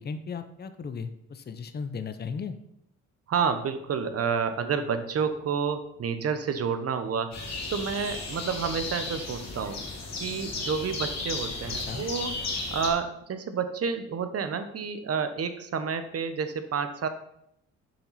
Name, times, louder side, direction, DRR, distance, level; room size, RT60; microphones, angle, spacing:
voice 1, 0.0-2.5 11.9-12.1, left 5 dB, 35° left, 10 dB, 0.8 m, -36 dB
voice 2, 3.3-7.4 7.7-9.8 10.2-17.1, right 6 dB, 50° right, 9 dB, 1.1 m, -29 dB
sound 1, 7.3-12.9, left 3 dB, 60° left, 2.9 m, -34 dB
7.3 x 5.7 x 5.8 m, 0.76 s
cardioid pair, 90°, 30 cm